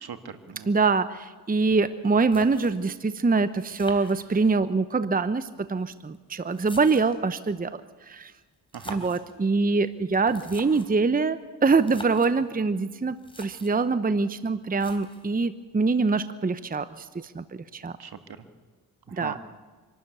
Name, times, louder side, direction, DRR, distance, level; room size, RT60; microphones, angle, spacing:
voice 1, 0.0-0.8 8.7-9.0 18.0-18.5 19.1-19.4, right 7 dB, 65° right, 9 dB, 1.8 m, -40 dB
voice 2, 0.7-7.8 8.1-8.3 8.9-17.4 17.7-17.9 19.1-19.4, right 4 dB, 20° right, 13 dB, 0.8 m, -24 dB
sound 1, 1.9-2.0 2.3-3.0 3.7-4.7 5.6-7.3 8.6-9.3 10.2-11.0 11.7-12.4 12.9-13.0 13.2-13.8 14.8-15.4, left 1 dB, 15° left, 3.5 m, -45 dB
26.0 x 12.5 x 8.3 m, 1.4 s
cardioid pair, 65°, 41 cm